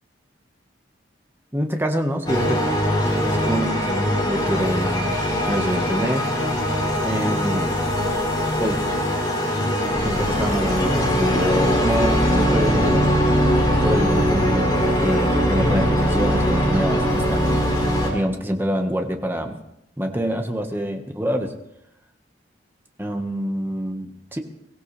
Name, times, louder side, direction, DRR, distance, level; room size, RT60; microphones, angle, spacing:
voice 1, 1.5-2.6 3.0-5.2 5.5-6.2 7.0-7.8 8.6-8.8 10.0-13.0 13.8-17.5 18.1-19.6 20.0-21.5 23.0-24.4, equal, 10° right, 4 dB, 1.4 m, -26 dB
sound 1, 2.3-18.1, equal, 25° left, 4.0 m, -21 dB
22.5 x 15.5 x 3.3 m, 0.81 s
head